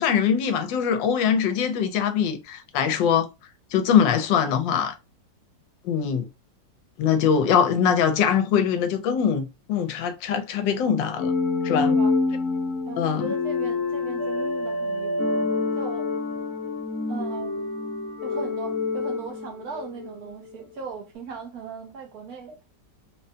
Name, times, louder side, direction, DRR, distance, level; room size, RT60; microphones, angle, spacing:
voice 1, 0.0-3.3 3.7-4.9 5.8-6.3 7.0-11.3 11.6-12.0 13.0-13.3, left 7 dB, 85° left, 1.3 m, -22 dB
sound 1, 11.2-20.1, left 3 dB, 55° left, 1.0 m, -27 dB
voice 2, 11.7-12.1 12.9-15.4 15.7-16.1 17.1-17.7 18.2-22.6, right 5 dB, 65° right, 1.1 m, -38 dB
3.8 x 2.2 x 2.7 m
omnidirectional pair, 2.0 m